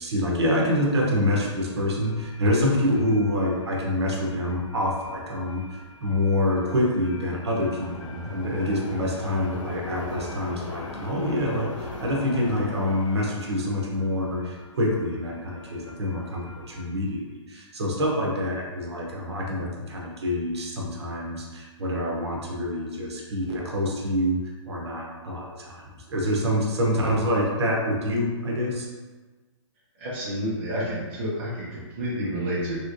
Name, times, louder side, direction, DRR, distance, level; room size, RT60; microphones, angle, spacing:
voice 1, 0.0-24.4 24.7-28.9, left 1 dB, 60° right, -2 dB, 0.8 m, -26 dB
sound 1, 1.0-16.8, left 3 dB, 90° left, 0.6 m, -42 dB
voice 2, 30.0-32.7, equal, 20° right, -8 dB, 0.5 m, -29 dB
3.0 x 2.9 x 2.5 m, 1.3 s
hypercardioid pair, 180°, 16 cm